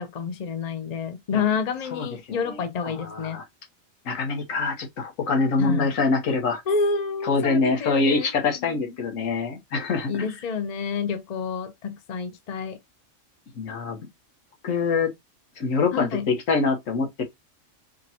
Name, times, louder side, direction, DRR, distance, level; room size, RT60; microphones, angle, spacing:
voice 1, 0.0-3.4 5.6-5.9 6.7-8.3 8.6-8.9 10.1-12.8 15.9-16.3, left 5 dB, 40° left, 0.7 m, -28 dB
voice 2, 1.9-2.5 2.8-3.4 4.0-6.6 7.2-10.3 13.6-14.0 14.6-15.1 15.6-17.2, left 4 dB, 90° left, 1.5 m, -25 dB
5.0 x 3.0 x 2.8 m
omnidirectional pair, 1.3 m